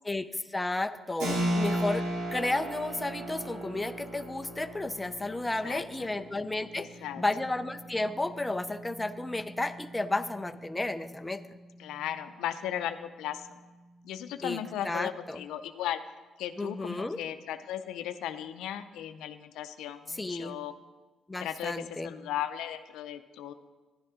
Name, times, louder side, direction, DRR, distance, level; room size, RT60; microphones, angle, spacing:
voice 1, 0.1-2.0 2.3-6.9 7.2-11.4 14.4-14.6 14.8-15.4 16.6-17.2 20.1-20.6 21.3-22.1, left 2 dB, 15° left, 10 dB, 0.5 m, -32 dB
Keyboard (musical), 1.2-11.6, right 1 dB, 85° right, 2.6 m, -37 dB
voice 2, 5.6-6.1 6.8-7.2 11.8-13.6 14.0-16.0 16.4-20.7 21.4-23.5, left 11 dB, 90° left, 10 dB, 0.5 m, -36 dB
11.5 x 9.6 x 3.7 m, 1.2 s
cardioid pair, 90°, 0 cm